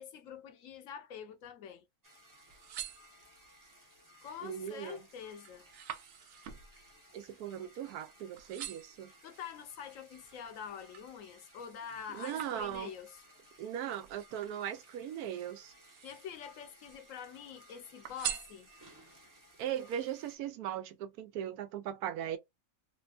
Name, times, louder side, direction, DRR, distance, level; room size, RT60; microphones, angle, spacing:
voice 1, 0.0-1.8 4.2-5.6 9.2-13.2 16.0-18.7, left 8 dB, 70° left, 0.9 m, -46 dB
sound 1, 2.0-20.4, equal, 20° right, 0.5 m, -60 dB
sound 2, 2.3-3.6 4.2-4.6 5.0-8.1 8.4-9.1 9.7-11.2 11.6-13.1 14.0-15.2 15.7-16.5 16.8-17.6 18.0-19.1 19.6-19.7, right 10 dB, 65° right, 0.7 m, -45 dB
voice 2, 4.4-5.0 7.1-9.1 12.1-12.9 13.6-15.7 19.6-22.4, right 10 dB, 90° right, 1.1 m, -38 dB
3.3 x 2.1 x 2.4 m
omnidirectional pair, 1.6 m